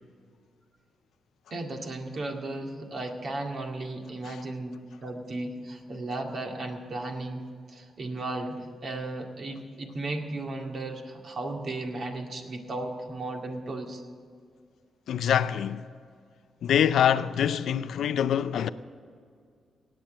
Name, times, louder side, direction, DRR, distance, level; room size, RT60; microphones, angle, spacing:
voice 1, 1.5-7.4 7.7-14.0, right 2 dB, 55° right, 2.0 m, -35 dB
voice 2, 15.1-15.9 16.6-18.7, left 9 dB, 80° left, 0.5 m, -25 dB
17.0 x 9.0 x 7.6 m
cardioid pair, 90°, 0 cm